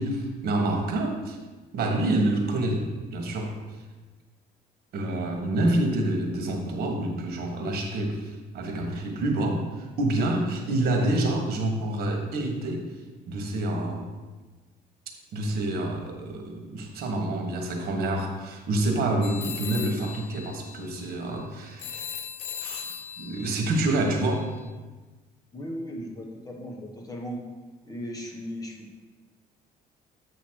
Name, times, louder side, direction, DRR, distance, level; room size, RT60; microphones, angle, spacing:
voice 1, 0.0-1.4 1.7-3.6 4.9-12.8 13.3-14.1 15.3-22.1 22.6-24.6, right 1 dB, 65° right, 3 dB, 1.4 m, -27 dB
sound 1, 19.2-24.7, left 8 dB, 70° left, 0.5 m, -39 dB
voice 2, 25.5-27.4 27.8-29.0, equal, 20° left, 0 dB, 1.4 m, -37 dB
7.9 x 3.0 x 6.3 m, 1.3 s
cardioid pair, 110°, 17 cm